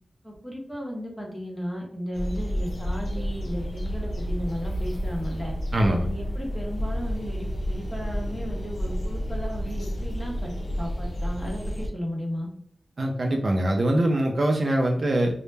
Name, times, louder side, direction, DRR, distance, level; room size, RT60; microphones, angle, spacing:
voice 1, 0.2-5.6 6.0-12.5, equal, 5° left, -1 dB, 0.8 m, -35 dB
sound 1, 2.1-11.9, equal, 60° left, 0.5 m, -30 dB
voice 2, 5.7-6.1 13.0-15.4, right 1 dB, 50° right, 1 dB, 0.4 m, -23 dB
2.1 x 2.0 x 3.1 m, 0.64 s
wide cardioid pair, 110°, 0 cm